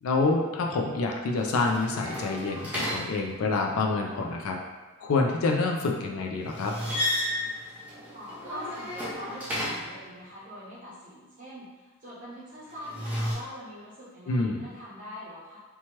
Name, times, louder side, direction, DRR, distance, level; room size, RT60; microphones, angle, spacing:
voice 1, 0.0-4.6 5.0-6.7 14.3-14.6, left 3 dB, 80° left, 2 dB, 0.4 m, -27 dB
sound 1, 1.3-3.7 6.4-10.1 12.7-13.3, left 1 dB, 5° right, 0.6 m, -33 dB
voice 2, 8.1-15.6, equal, 40° right, -9 dB, 1.0 m, -43 dB
2.9 x 2.2 x 2.9 m, 1.2 s
head